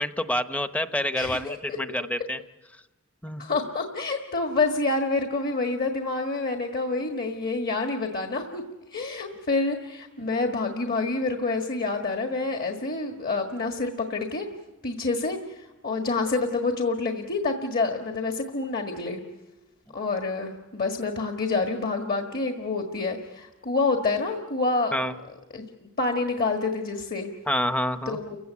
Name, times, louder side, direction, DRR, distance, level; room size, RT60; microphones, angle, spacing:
voice 1, 0.0-2.4 3.2-3.4 24.9-25.1 27.5-28.2, left 1 dB, 5° left, 10 dB, 0.9 m, -27 dB
voice 2, 1.1-1.8 3.4-8.6 8.9-14.5 14.8-19.2 19.9-24.9 25.5-27.3 28.1-28.4, left 3 dB, 45° left, 4 dB, 1.6 m, -28 dB
29.5 x 16.0 x 8.3 m, 1.1 s
head